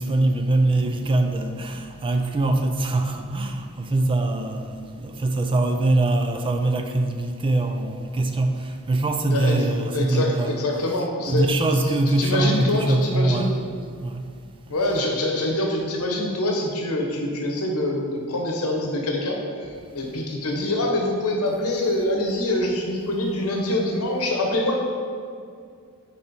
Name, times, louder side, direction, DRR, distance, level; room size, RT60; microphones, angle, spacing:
voice 1, 0.0-10.6 11.3-13.7 14.0-14.2, right 2 dB, 25° right, 0.3 m, -23 dB
voice 2, 9.3-9.7 9.9-11.5 12.1-13.5 14.7-24.8, left 1 dB, 75° left, 1.1 m, -25 dB
4.8 x 4.4 x 5.2 m
head